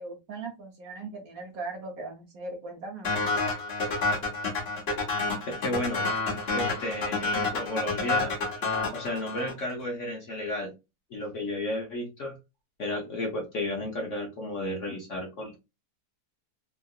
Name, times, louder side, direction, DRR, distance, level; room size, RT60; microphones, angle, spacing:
voice 1, 0.0-3.4, right 3 dB, 60° right, 2 dB, 1.0 m, -39 dB
sound 1, 3.0-9.7, left 3 dB, 40° left, 1.1 m, -29 dB
voice 2, 5.5-6.0 6.5-8.3 8.9-10.7 11.1-12.3 12.8-15.6, left 1 dB, 55° left, 0 dB, 0.9 m, -33 dB
3.6 x 2.4 x 2.3 m, 0.25 s
omnidirectional pair, 1.9 m